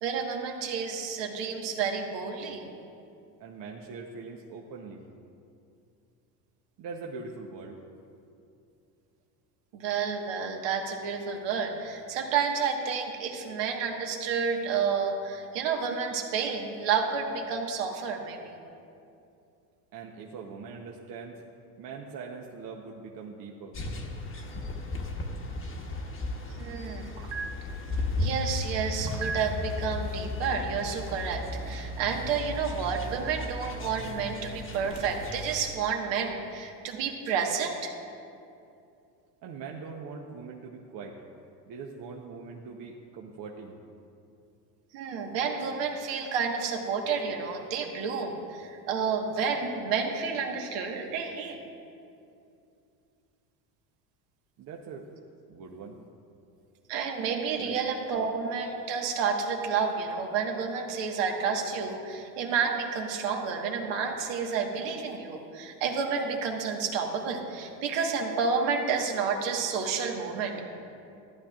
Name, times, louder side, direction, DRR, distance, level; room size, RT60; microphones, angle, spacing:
voice 1, 0.0-2.7 9.7-18.5 26.6-27.6 28.2-37.9 44.9-51.7 56.9-70.6, right 5 dB, 60° right, 2 dB, 1.5 m, -30 dB
voice 2, 3.4-5.0 6.8-7.8 19.9-21.4 21.8-23.7 39.4-41.2 41.7-43.8 54.6-55.1 55.5-56.0 57.6-57.8, right 5 dB, 45° right, 0 dB, 0.9 m, -42 dB
sound 1, 23.7-35.6, left 2 dB, 25° left, 1.2 m, -35 dB
14.0 x 10.0 x 2.4 m, 2.6 s
supercardioid pair, 95°, 49 cm